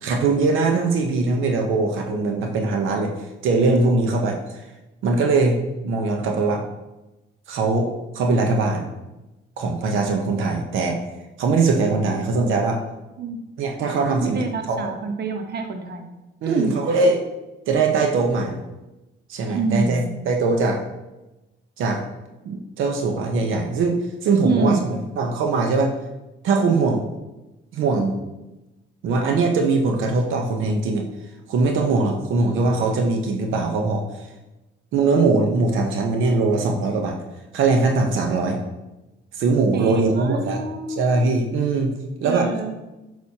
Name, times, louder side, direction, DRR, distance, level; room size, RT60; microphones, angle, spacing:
voice 1, 0.0-3.1 3.4-4.6 5.0-6.6 7.5-7.9 8.1-8.8 9.6-11.0 11.4-12.8 13.6-14.8 16.4-17.2 17.7-18.6 19.3-20.8 21.8-22.0 22.4-24.8 25.2-25.9 26.4-27.0 27.7-28.2 29.0-31.0 31.5-34.0 34.9-37.2 37.5-38.6 39.3-40.6 41.0-41.9 42.2-42.5, right 3 dB, 85° right, 2 dB, 1.0 m, -21 dB
voice 2, 14.2-16.1 16.5-16.8 19.5-20.1 24.4-24.9 39.7-41.0 42.2-42.8, right 4 dB, 55° right, 5 dB, 1.0 m, -26 dB
8.5 x 6.2 x 2.9 m, 1.0 s
cardioid pair, 90°, 20 cm